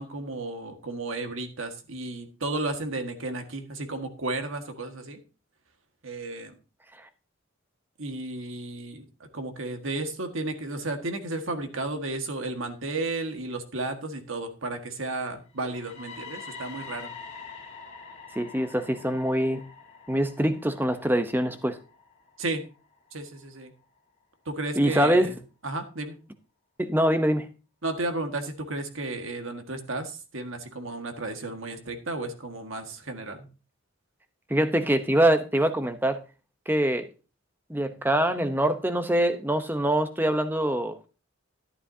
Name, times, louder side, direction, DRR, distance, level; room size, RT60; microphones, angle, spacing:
voice 1, 0.0-5.2 6.0-6.6 8.0-17.1 22.4-22.6 23.1-23.7 24.5-25.4 25.6-26.2 27.8-33.5, right 2 dB, 75° right, 6 dB, 1.7 m, -33 dB
sound 1, 15.5-23.4, left 4 dB, 30° left, 2.3 m, -45 dB
voice 2, 18.4-19.6 20.1-21.8 24.8-25.3 26.8-27.5 34.5-36.2 36.7-37.1 37.7-41.1, right 1 dB, 10° right, 9 dB, 0.8 m, -24 dB
12.5 x 11.0 x 2.8 m, 0.32 s
head